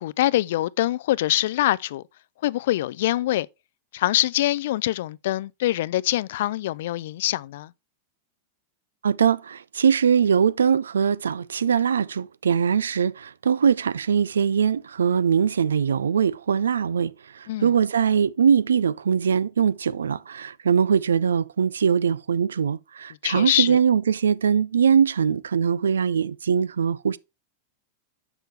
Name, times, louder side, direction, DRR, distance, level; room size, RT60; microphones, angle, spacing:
voice 1, 0.0-2.0 2.4-3.5 3.9-7.7 17.5-17.7 23.2-23.8, left 15 dB, 70° left, 0.3 m, -24 dB
voice 2, 9.0-27.2, right 7 dB, 90° right, 0.3 m, -22 dB
6.6 x 6.1 x 3.3 m
hypercardioid pair, 110°, 0 cm